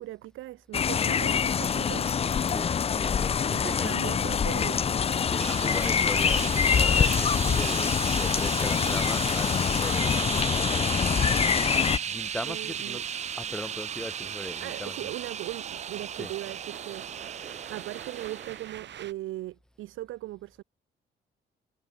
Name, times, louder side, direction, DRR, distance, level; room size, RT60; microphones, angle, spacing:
voice 1, 0.0-2.1 3.5-4.8 7.4-7.6 12.5-13.0 14.6-17.3 17.7-20.6, right 16 dB, 85° right, 1.1 m, -39 dB
sound 1, 0.7-12.0, left 7 dB, 30° left, 0.4 m, -25 dB
voice 2, 2.4-3.9 5.3-11.6 11.9-13.0 13.4-15.1 16.2-16.3, left 1 dB, 5° left, 1.4 m, -39 dB
sound 2, 5.4-18.7, right 8 dB, 35° right, 0.4 m, -35 dB
sound 3, 9.6-19.1, right 10 dB, 65° right, 2.7 m, -49 dB
cardioid pair, 90°, 20 cm